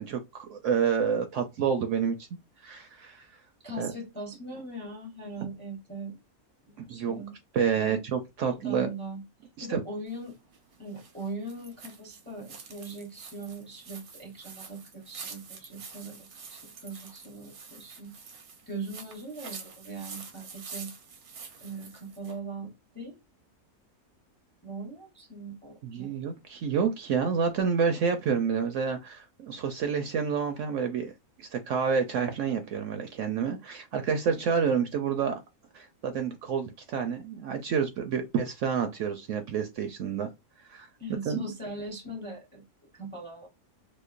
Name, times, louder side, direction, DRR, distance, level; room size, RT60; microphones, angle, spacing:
voice 1, 0.0-2.2 2.6-3.2 3.8-3.9 6.9-7.2 7.5-8.9 9.6-9.8 25.8-31.1 31.4-35.4 35.7-40.3 40.7-40.9 41.3-41.4, right 6 dB, 65° right, 0.8 m, -29 dB
voice 2, 3.6-6.2 6.6-7.3 8.4-9.2 9.6-10.4 10.8-18.1 18.7-20.9 21.6-23.2 24.6-26.1 41.0-42.6 42.9-43.5, right 2 dB, 10° left, 0.6 m, -40 dB
sound 1, 10.1-22.4, right 5 dB, 85° right, 1.3 m, -47 dB
5.1 x 2.1 x 2.4 m
omnidirectional pair, 1.5 m